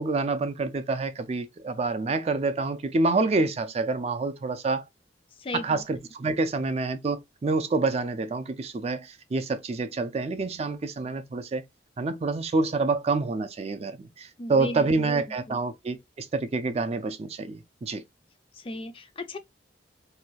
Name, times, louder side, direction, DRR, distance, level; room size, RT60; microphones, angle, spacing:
voice 1, 0.0-4.9 5.5-11.6 12.0-18.0, right 3 dB, 35° right, 0.4 m, -27 dB
voice 2, 5.4-5.8 14.4-14.9 15.3-15.6 18.5-19.4, left 2 dB, 30° left, 0.4 m, -36 dB
2.6 x 2.2 x 3.0 m
head